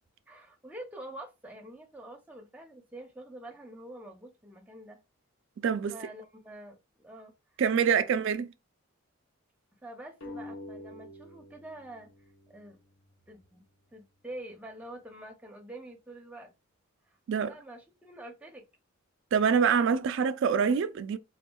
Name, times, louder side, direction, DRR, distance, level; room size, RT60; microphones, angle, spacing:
voice 1, 0.3-5.0 5.9-7.3 9.8-12.8 13.3-16.5 17.1-18.6, right 1 dB, 5° right, 0.5 m, -46 dB
voice 2, 5.6-5.9 7.6-8.5 17.3-17.5 19.3-21.2, right 6 dB, 60° right, 0.3 m, -25 dB
sound 1, 10.2-13.4, left 1 dB, 65° left, 0.8 m, -47 dB
3.5 x 2.3 x 2.2 m
head